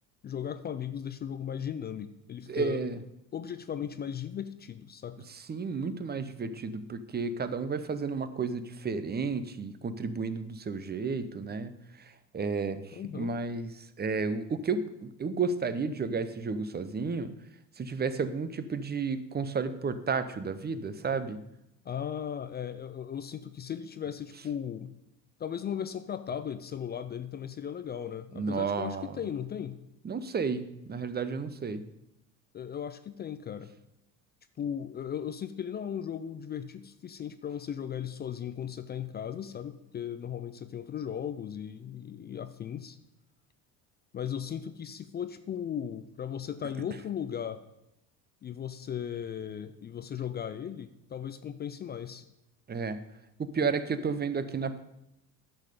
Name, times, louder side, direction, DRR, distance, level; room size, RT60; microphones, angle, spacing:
voice 1, 0.2-2.8 3.3-5.2 12.9-13.4 21.9-24.9 25.4-29.8 32.5-33.7 34.6-43.0 44.1-47.6 48.4-52.2, left 8 dB, 25° left, 11 dB, 0.3 m, -37 dB
voice 2, 2.5-3.0 5.3-11.7 12.0-17.3 17.8-21.4 28.3-29.2 30.0-31.8 52.7-53.0 53.4-54.8, right 4 dB, 20° right, 12 dB, 0.7 m, -32 dB
10.5 x 6.6 x 5.0 m, 0.85 s
hypercardioid pair, 70°, 50 cm